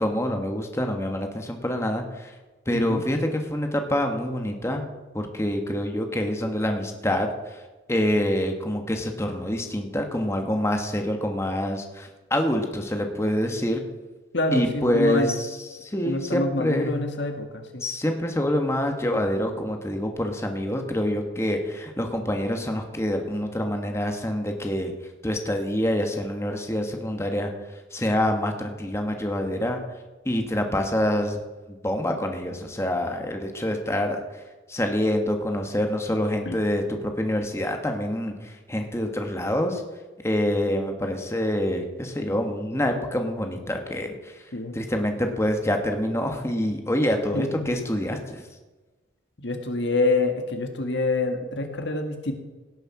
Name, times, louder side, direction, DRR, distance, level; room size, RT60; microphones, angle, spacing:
voice 1, 0.0-2.3 2.7-4.9 5.1-7.6 7.9-13.8 14.5-17.0 17.8-24.9 25.2-27.5 27.9-29.8 30.2-31.4 31.7-34.2 34.7-39.8 40.2-44.4 44.7-48.5, left 1 dB, 15° left, 4 dB, 1.3 m, -26 dB
voice 2, 2.7-3.0 14.3-15.3 16.0-17.8 36.5-36.6 44.5-44.7 47.3-47.7 49.4-52.3, left 2 dB, 65° left, 5 dB, 1.8 m, -26 dB
17.5 x 6.6 x 5.9 m, 1.2 s
head